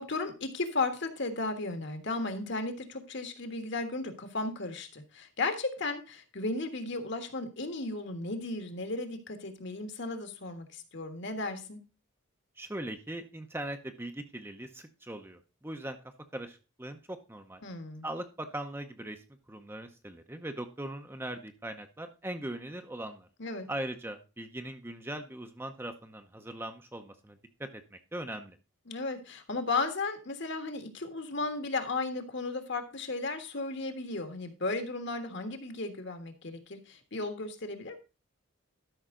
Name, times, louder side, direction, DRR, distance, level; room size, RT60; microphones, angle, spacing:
voice 1, 0.0-11.8 17.6-18.1 23.4-23.7 28.9-38.0, left 3 dB, 55° left, 7 dB, 1.5 m, -35 dB
voice 2, 12.6-16.0 16.3-17.6 18.0-23.3 23.7-28.6, right 1 dB, 10° right, 7 dB, 0.7 m, -40 dB
12.5 x 5.8 x 3.8 m, 0.31 s
head